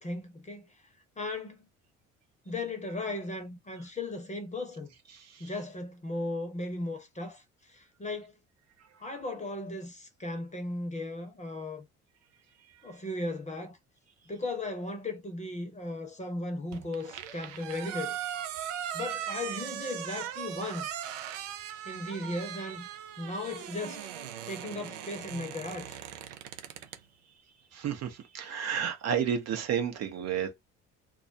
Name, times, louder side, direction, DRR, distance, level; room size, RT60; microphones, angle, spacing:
voice 1, 0.0-0.7 1.2-1.6 2.5-4.9 5.4-7.4 7.7-8.3 9.0-11.9 12.8-13.8 14.3-18.2 18.9-21.0 21.8-22.9 23.2-24.1 24.5-26.0, left 2 dB, 20° left, 0.9 m, -36 dB
sound 1, 16.7-27.0, right 10 dB, 80° right, 0.5 m, -39 dB
voice 2, 27.7-30.7, right 8 dB, 45° right, 0.8 m, -31 dB
2.4 x 2.0 x 2.6 m
hypercardioid pair, 55°, 36 cm